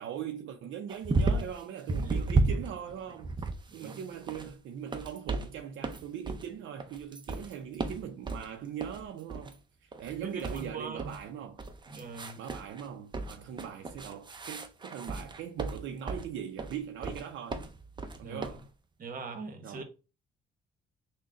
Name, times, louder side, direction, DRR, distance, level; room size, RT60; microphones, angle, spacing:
voice 1, 0.0-3.5 3.7-9.6 9.8-11.6 12.4-17.7 18.2-18.7 19.6-19.8, right 9 dB, 75° right, 0.5 m, -40 dB
sound 1, 0.9-1.6 1.9-4.5 4.9-5.5 5.8-6.5 6.8-8.5 8.8-9.0 9.3-9.6 9.9-11.2 11.6-12.9 13.1-16.3 16.6-17.2 17.5-18.6, right 3 dB, 25° right, 0.5 m, -33 dB
voice 2, 2.0-2.3 3.7-4.0 10.2-11.1 11.9-12.4 18.2-18.4 19.0-19.8, right 4 dB, 45° right, 1.0 m, -42 dB
3.7 x 2.2 x 3.7 m
cardioid pair, 90°, 20 cm